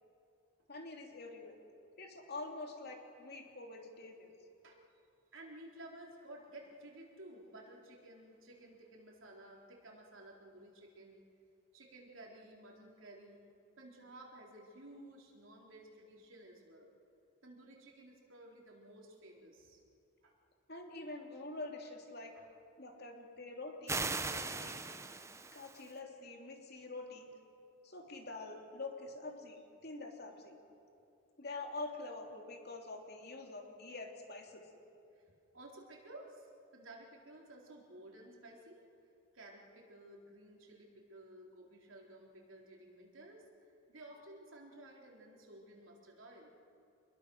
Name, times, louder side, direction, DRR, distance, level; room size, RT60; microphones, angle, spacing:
voice 1, 0.7-1.6 2.0-4.3 20.7-22.3 22.8-24.0 24.3-24.8 25.5-27.3 27.8-30.6 31.4-34.6, left 2 dB, 50° left, 2 dB, 3.1 m, -46 dB
voice 2, 5.3-11.2 11.7-13.4 13.8-16.9 17.4-19.8 20.2-20.3 22.3-22.5 35.1-35.3 35.5-38.8 39.3-46.5, right 1 dB, 70° right, -1 dB, 4.1 m, -54 dB
sound 1, 23.9-25.9, right 3 dB, 15° right, 0.8 m, -39 dB
27.5 x 21.5 x 6.5 m, 2.6 s
head